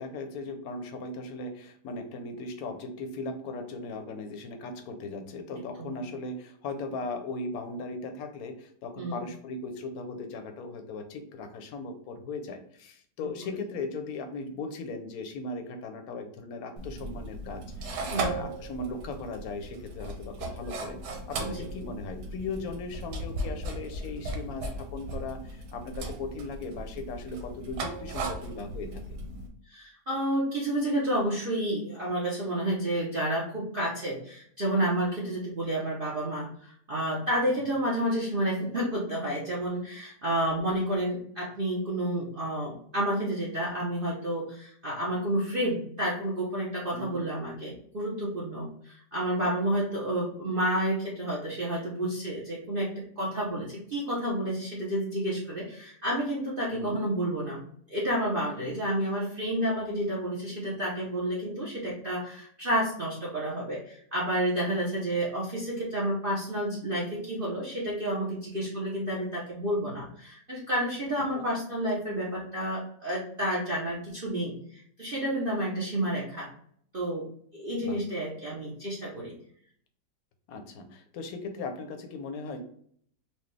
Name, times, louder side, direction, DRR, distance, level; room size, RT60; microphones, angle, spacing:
voice 1, 0.0-29.0 46.9-47.2 56.7-57.0 71.3-71.4 77.8-78.0 80.5-82.6, left 3 dB, 65° left, 6 dB, 1.0 m, -38 dB
sound 1, 16.8-29.5, right 2 dB, 90° right, 1.3 m, -37 dB
voice 2, 29.7-57.6 57.9-76.5 76.9-77.2 77.5-79.3, right 1 dB, 45° right, -5 dB, 0.7 m, -30 dB
4.4 x 2.3 x 3.2 m, 0.62 s
omnidirectional pair, 1.8 m